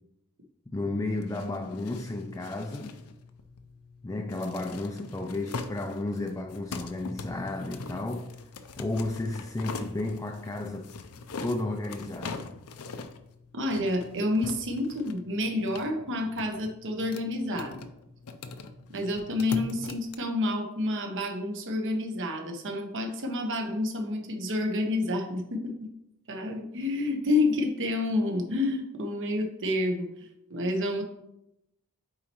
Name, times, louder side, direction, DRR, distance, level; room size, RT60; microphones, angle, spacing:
voice 1, 0.7-3.1 4.0-8.3 8.8-10.9 11.4-12.6, left 2 dB, 15° left, 0.3 m, -33 dB
sound 1, 1.1-20.1, left 3 dB, 75° left, 0.6 m, -42 dB
voice 2, 13.5-17.9 18.9-25.7 26.3-31.0, left 2 dB, 55° right, 1.0 m, -29 dB
8.4 x 4.2 x 3.0 m
head